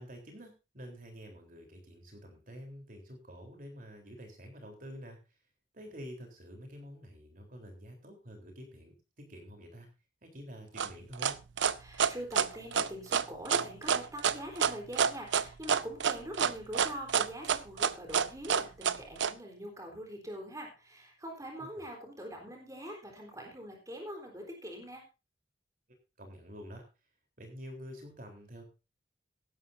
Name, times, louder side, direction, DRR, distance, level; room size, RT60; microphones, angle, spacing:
voice 1, 0.0-5.2 5.7-9.9 10.2-11.4 21.6-21.7 26.2-26.8 27.4-28.7, equal, 50° right, 3 dB, 3.8 m, -48 dB
sound 1, 10.8-19.3, right 7 dB, 90° right, 0.7 m, -28 dB
voice 2, 11.8-25.0, equal, 20° right, 1 dB, 3.9 m, -43 dB
16.0 x 13.0 x 2.7 m, 0.30 s
head